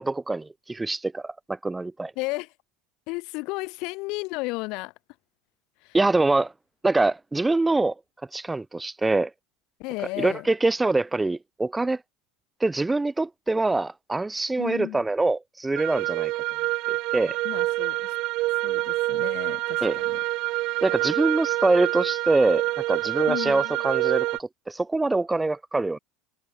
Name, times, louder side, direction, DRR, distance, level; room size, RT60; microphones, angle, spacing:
voice 1, 0.0-2.1 5.9-6.5 6.8-7.9 8.3-9.3 10.2-12.0 12.6-16.3 16.9-17.4 19.8-20.0 20.8-26.0, right 2 dB, 10° right, 0.7 m, -24 dB
voice 2, 2.2-2.5 3.1-4.9 5.8-6.0 9.8-10.5 14.6-15.1 17.4-18.1 18.6-20.2 23.3-23.7, left 25 dB, 65° left, 4.4 m, -33 dB
sound 1, 15.8-24.4, right 20 dB, 60° right, 3.9 m, -27 dB
supercardioid pair, 110°, 0 cm